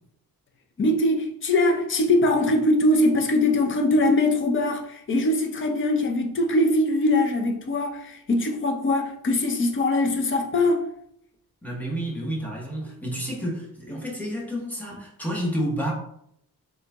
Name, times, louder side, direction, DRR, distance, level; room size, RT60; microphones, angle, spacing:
voice 1, 0.8-10.8, left 1 dB, 35° left, 0.5 m, -22 dB
voice 2, 11.6-15.9, equal, 5° left, 1.0 m, -30 dB
3.8 x 2.8 x 3.4 m
wide cardioid pair, 165°, 38 cm